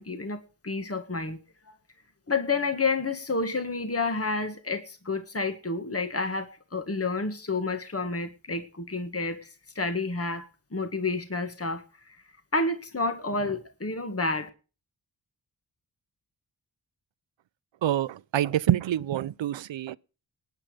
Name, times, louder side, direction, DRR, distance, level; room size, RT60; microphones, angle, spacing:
voice 1, 0.0-1.4 2.3-12.2 12.5-14.5, left 3 dB, 30° left, 1.9 m, -30 dB
voice 2, 17.8-20.0, right 11 dB, 80° right, 0.6 m, -26 dB
18.0 x 9.4 x 5.1 m
cardioid pair, 45°, 45 cm